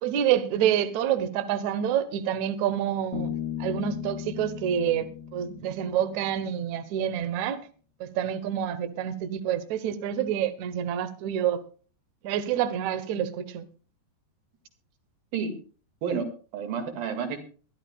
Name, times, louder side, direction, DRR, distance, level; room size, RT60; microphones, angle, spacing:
voice 1, 0.0-3.3 3.6-7.6 8.0-11.6 12.2-13.6, right 10 dB, 90° right, 1.6 m, -27 dB
Bass guitar, 3.1-6.7, left 10 dB, 80° left, 5.1 m, -36 dB
voice 2, 16.0-17.4, right 6 dB, 60° right, 3.5 m, -30 dB
24.0 x 12.0 x 2.3 m
omnidirectional pair, 4.9 m